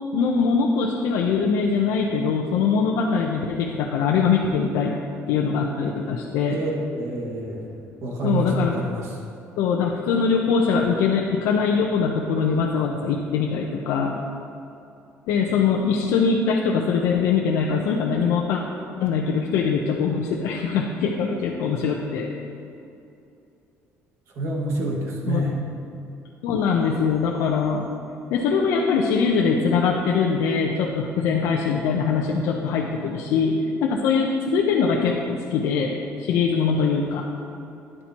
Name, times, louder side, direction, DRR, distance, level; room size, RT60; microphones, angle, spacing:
voice 1, 0.1-4.9 5.3-6.6 8.2-8.7 9.6-14.1 15.3-18.6 19.0-22.3 25.3-25.6 26.4-27.8 28.3-37.3, left 5 dB, 90° left, -1 dB, 0.8 m, -22 dB
voice 2, 6.5-7.8 8.0-9.1 24.4-25.6, right 2 dB, 65° right, -1 dB, 1.9 m, -27 dB
12.5 x 10.0 x 3.0 m, 2.7 s
cardioid pair, 130°, 5 cm